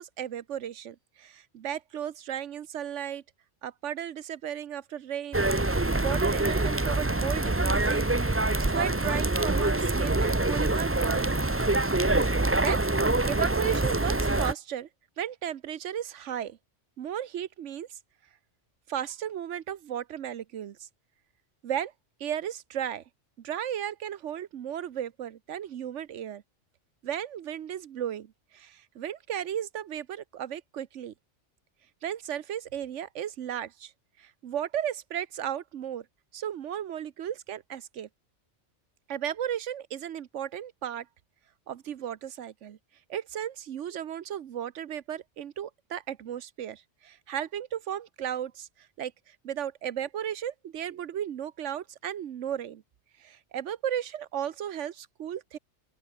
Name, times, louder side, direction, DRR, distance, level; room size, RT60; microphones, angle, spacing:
voice 1, 0.0-3.2 3.6-8.4 8.7-11.4 12.6-12.8 13.3-14.9 15.2-16.6 17.0-18.0 18.9-20.9 21.6-21.9 22.2-23.0 23.4-26.4 27.0-31.1 32.0-33.9 34.2-36.1 36.3-38.1 39.1-41.1 41.7-42.8 43.1-52.8 53.2-55.6, right 10 dB, 85° right, 1.2 m, -35 dB
sound 1, 5.3-14.5, right 2 dB, 15° right, 0.7 m, -25 dB
open air
omnidirectional pair, 1.2 m